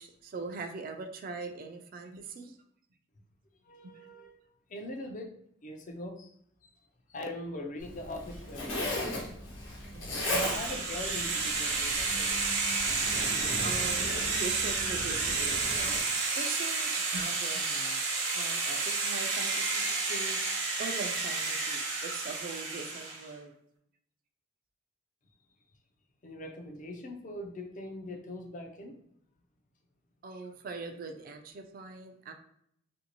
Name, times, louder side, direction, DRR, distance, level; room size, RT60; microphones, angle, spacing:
voice 1, 0.0-2.6 3.8-4.1 9.9-10.2 13.6-18.1 18.3-20.4 20.8-23.5 30.2-32.3, right 4 dB, 45° right, 6 dB, 0.4 m, -42 dB
voice 2, 3.7-4.3 4.7-5.3 5.6-6.3 7.1-9.2 10.2-12.6 26.2-29.0, left 1 dB, 40° left, 3 dB, 0.4 m, -41 dB
Zipper (clothing), 7.8-16.0, left 1 dB, 80° left, 1.0 m, -37 dB
sound 1, 10.2-23.3, right 4 dB, 70° right, 0.8 m, -31 dB
2.9 x 2.6 x 2.9 m, 0.72 s
head